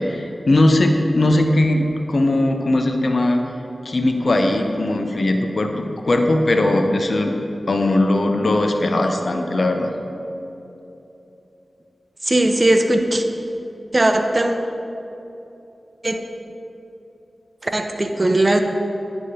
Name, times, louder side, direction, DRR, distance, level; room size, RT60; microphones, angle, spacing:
voice 1, 0.0-3.4 3.8-7.3 7.7-9.9, left 1 dB, 60° left, 4 dB, 0.7 m, -19 dB
voice 2, 12.2-13.2 13.9-14.6 16.0-16.2 17.6-18.6, right 1 dB, 35° right, 5 dB, 0.6 m, -18 dB
9.9 x 3.6 x 5.6 m, 2.9 s
cardioid pair, 40°, 0 cm